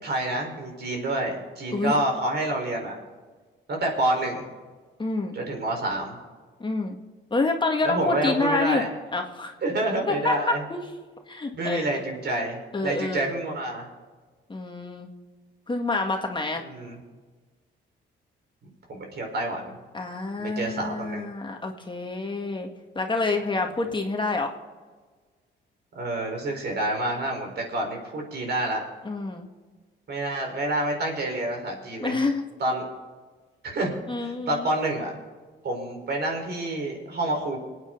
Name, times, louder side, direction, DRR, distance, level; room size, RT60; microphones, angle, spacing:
voice 1, 0.0-3.0 3.7-4.5 5.3-6.2 7.8-8.9 9.6-10.6 11.5-13.9 16.6-17.0 18.6-19.8 20.4-21.3 25.9-28.8 30.1-32.2 32.6-32.8 33.6-33.9 34.2-35.1 35.6-37.6, right 1 dB, 55° right, 1 dB, 4.6 m, -28 dB
voice 2, 5.0-5.4 6.6-7.0 7.3-8.8 9.1-9.5 10.1-10.8 11.3-11.9 12.7-13.3 14.5-15.1 15.7-16.6 19.9-22.7 23.0-24.5 29.0-29.5 32.0-32.4 34.1-34.7, left 3 dB, 25° left, 3 dB, 1.8 m, -27 dB
26.0 x 9.2 x 4.0 m, 1.4 s
cardioid pair, 90°, 20 cm